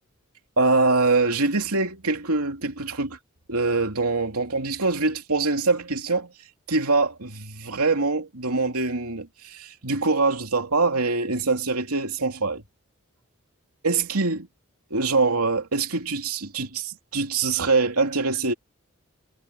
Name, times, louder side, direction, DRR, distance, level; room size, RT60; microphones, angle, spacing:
voice 1, 0.6-3.2 3.5-6.3 6.7-12.6 13.8-14.5 14.9-18.5, right 3 dB, 90° right, 3.0 m, -24 dB
head